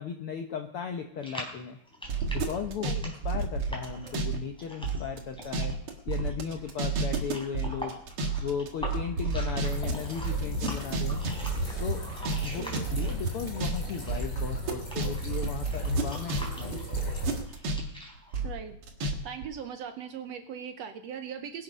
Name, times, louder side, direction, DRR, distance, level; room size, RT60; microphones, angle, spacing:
voice 1, 0.0-1.8 2.3-2.9 3.2-5.8 6.1-7.9 8.4-11.2 11.8-12.0 12.4-17.4, left 7 dB, 75° left, 5 dB, 1.3 m, -36 dB
sound 1, 1.2-13.4 13.7-18.4, equal, ahead, 3.4 m, -44 dB
sound 2, 2.0-4.4 4.6-16.4 16.7-19.1 19.4-19.5, right 4 dB, 50° right, 2.1 m, -30 dB
sound 3, 9.6-17.4, equal, 30° left, 4.4 m, -38 dB
voice 2, 12.6-13.1 18.4-18.8 19.2-21.6, right 8 dB, 75° right, 7 dB, 1.7 m, -39 dB
22.0 x 7.7 x 5.3 m, 0.78 s
omnidirectional pair, 3.6 m